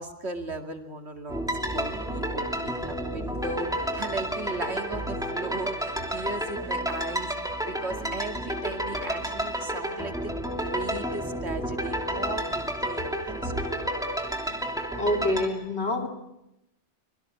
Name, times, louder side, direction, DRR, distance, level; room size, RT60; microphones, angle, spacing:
voice 1, 0.0-3.7 3.9-7.3 7.6-13.8, right 2 dB, 65° right, 5 dB, 2.7 m, -37 dB
sound 1, 1.3-15.5, equal, 5° right, 3.0 m, -31 dB
voice 2, 14.9-16.1, left 1 dB, 65° left, 3 dB, 3.3 m, -26 dB
25.0 x 23.0 x 8.6 m, 0.88 s
omnidirectional pair, 1.2 m